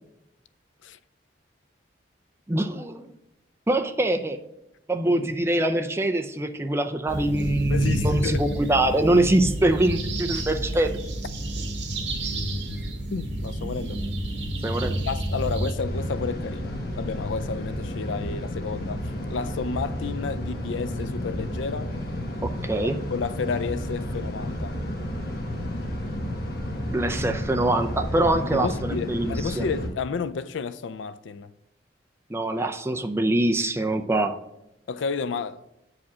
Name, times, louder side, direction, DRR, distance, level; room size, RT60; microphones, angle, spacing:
voice 1, 2.5-3.1 3.7-4.4 4.9-11.0 14.6-15.0 22.4-23.0 26.9-29.7 32.3-34.4, right 1 dB, 15° right, 0.5 m, -24 dB
sound 1, 7.1-15.7, right 1 dB, 70° right, 1.6 m, -30 dB
voice 2, 7.7-8.6 10.3-10.5 13.1-14.0 15.1-19.0 19.3-21.9 22.8-24.8 28.5-31.5 34.9-35.6, left 5 dB, 80° left, 0.4 m, -31 dB
sound 2, 15.8-29.9, equal, 55° left, 1.4 m, -31 dB
8.3 x 4.9 x 6.1 m
head